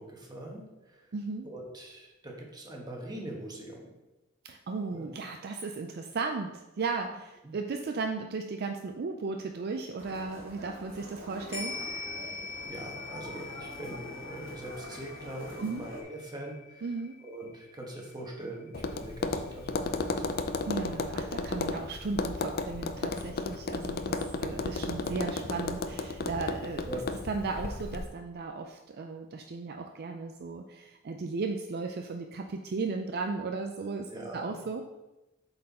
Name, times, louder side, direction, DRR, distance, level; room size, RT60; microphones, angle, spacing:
voice 1, 0.0-1.1 1.4-3.9 4.9-5.1 7.4-7.6 12.7-16.9 17.2-20.3 21.2-21.5 26.8-27.0 34.1-34.6, right 1 dB, 20° right, 0 dB, 1.3 m, -42 dB
voice 2, 1.1-1.5 4.4-11.8 15.6-15.8 16.8-17.2 20.7-26.8 27.3-34.8, right 4 dB, 50° right, 4 dB, 0.4 m, -35 dB
sound 1, 10.0-16.0, equal, 70° right, 1.9 m, -45 dB
sound 2, 11.5-20.1 20.4-20.5, left 4 dB, 30° left, 1.5 m, -44 dB
Tap, 18.7-28.0, left 3 dB, 50° left, 0.5 m, -34 dB
7.5 x 4.4 x 4.2 m, 1.0 s
head